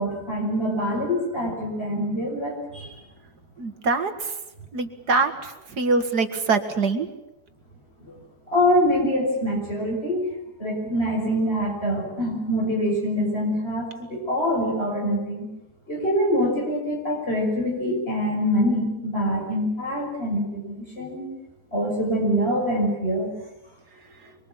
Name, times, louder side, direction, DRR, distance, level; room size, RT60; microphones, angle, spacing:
voice 1, 0.0-3.0 8.0-8.2 8.5-10.3 10.6-15.5 15.9-21.3 21.7-23.3, equal, 40° left, -1 dB, 6.5 m, -25 dB
voice 2, 3.6-4.4 4.7-7.1 24.2-24.3, right 4 dB, 75° right, 7 dB, 2.5 m, -24 dB
24.5 x 24.0 x 7.4 m, 0.92 s
omnidirectional pair, 1.7 m